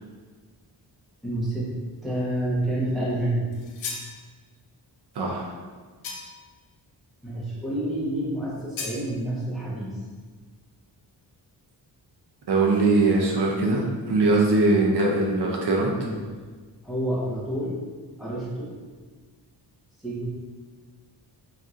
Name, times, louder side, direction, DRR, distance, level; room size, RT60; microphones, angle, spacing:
voice 1, 1.2-1.7 2.0-3.5 7.2-10.0 16.0-16.2 16.8-17.8 18.2-18.7 20.0-20.2, right 1 dB, ahead, -8 dB, 0.9 m, -28 dB
sound 1, 3.5-4.1 6.0-6.5 8.8-9.0, left 4 dB, 90° left, 0.7 m, -35 dB
voice 2, 5.2-5.5 12.5-15.9, right 2 dB, 60° right, -1 dB, 0.6 m, -21 dB
4.2 x 3.5 x 2.5 m, 1.4 s
wide cardioid pair, 170°, 45 cm